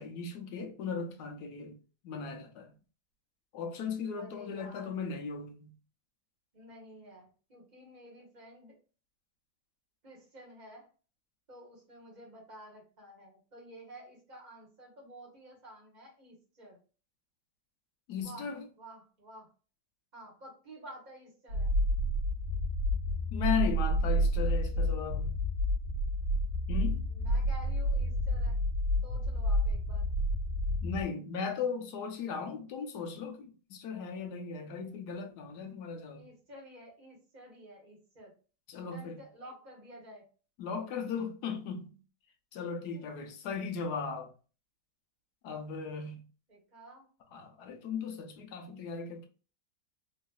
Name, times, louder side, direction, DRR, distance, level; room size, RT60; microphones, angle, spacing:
voice 1, 0.0-2.7 3.5-5.7 18.1-18.6 23.3-25.4 26.7-27.0 30.8-36.3 38.7-39.2 40.6-42.0 42.5-44.3 45.4-46.3 47.3-49.3, left 6 dB, 70° left, 1.2 m, -37 dB
voice 2, 4.2-5.0 6.5-8.8 10.0-10.9 11.5-16.8 18.2-18.5 18.8-19.5 20.1-21.7 27.1-28.6 29.0-30.1 36.1-38.3 38.8-40.3 46.5-47.1, equal, 25° right, 1.3 m, -51 dB
sound 1, 21.5-31.0, equal, 70° right, 1.5 m, -30 dB
3.9 x 2.6 x 2.3 m
omnidirectional pair, 1.9 m